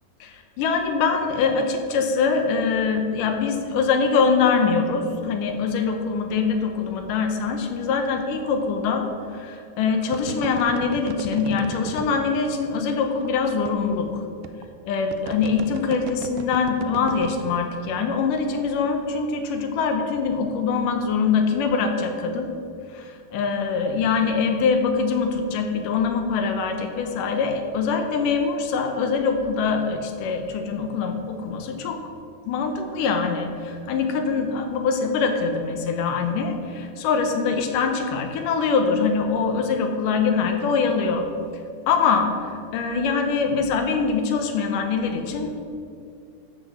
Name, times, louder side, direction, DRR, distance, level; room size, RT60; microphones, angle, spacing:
voice 1, 0.2-14.2 14.9-22.5 22.9-32.0 32.5-41.3 41.9-45.6, left 5 dB, 75° left, 5 dB, 2.4 m, -23 dB
sound 1, 8.6-8.8 10.1-12.2 13.2-13.3 13.7-13.8 14.4-14.6 15.1-17.4, right 9 dB, 85° right, 2.3 m, -35 dB
12.5 x 5.2 x 7.4 m, 2.4 s
omnidirectional pair, 3.9 m